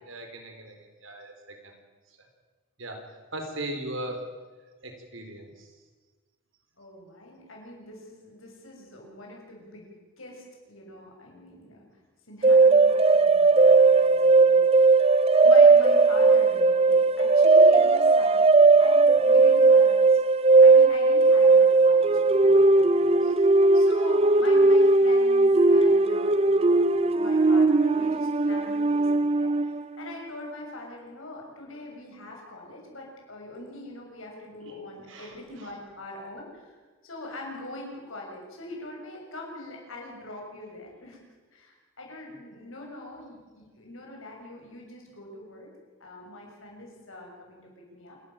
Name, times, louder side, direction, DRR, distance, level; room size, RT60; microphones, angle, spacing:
voice 1, 0.1-1.3 1.6-1.7 2.8-3.0 3.3-4.3 4.8-5.7 34.6-34.7 35.1-35.3, right 1 dB, 65° right, 4 dB, 4.4 m, -38 dB
voice 2, 6.8-9.9 10.2-11.9 12.3-15.1 15.4-20.2 20.6-23.5 23.7-36.7 37.0-41.2 41.5-45.7 46.0-48.2, left 1 dB, 75° left, 0 dB, 6.9 m, -43 dB
sound 1, 12.4-29.8, right 3 dB, 30° right, 0.5 m, -18 dB
27.5 x 12.5 x 9.0 m, 1.4 s
head